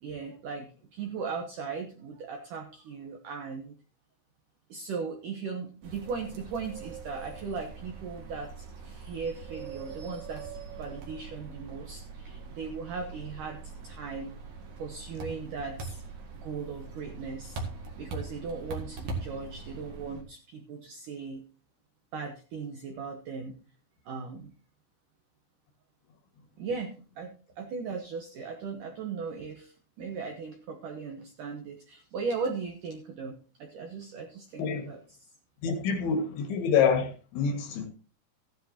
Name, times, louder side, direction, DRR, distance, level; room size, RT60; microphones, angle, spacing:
voice 1, 0.0-3.7 4.7-14.3 14.8-16.0 16.3-17.6 18.0-21.4 22.1-23.6 24.1-24.5 26.6-33.3 33.6-35.3, right 5 dB, 75° right, 1.9 m, -38 dB
sound 1, 5.8-20.2, right 4 dB, 50° right, 2.8 m, -42 dB
voice 2, 34.6-34.9 35.6-37.9, left 6 dB, 75° left, 4.2 m, -27 dB
15.5 x 10.5 x 2.8 m
omnidirectional pair, 5.3 m